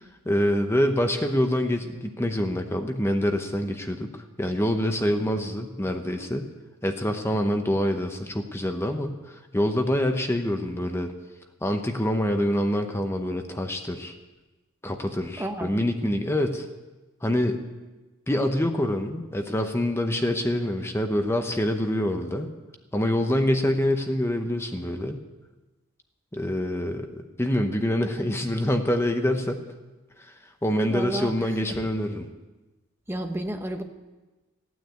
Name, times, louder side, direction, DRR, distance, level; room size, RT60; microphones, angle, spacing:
voice 1, 0.2-6.5 6.8-11.1 11.6-14.1 14.8-16.7 17.2-17.6 18.3-22.5 22.9-25.2 26.3-29.6 30.2-30.3 30.6-32.3, left 1 dB, 10° left, 5 dB, 0.9 m, -26 dB
voice 2, 15.4-15.7 30.9-31.5 33.1-33.8, right 1 dB, 10° right, 4 dB, 1.0 m, -31 dB
15.5 x 9.4 x 8.4 m, 1.2 s
head